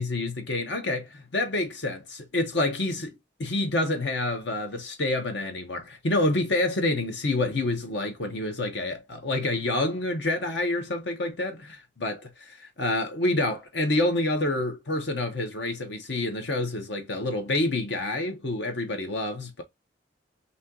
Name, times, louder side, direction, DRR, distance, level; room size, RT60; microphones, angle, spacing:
voice 1, 0.0-3.1 3.4-19.6, left 2 dB, 65° left, 0.9 m, -28 dB
4.2 x 2.9 x 3.7 m
head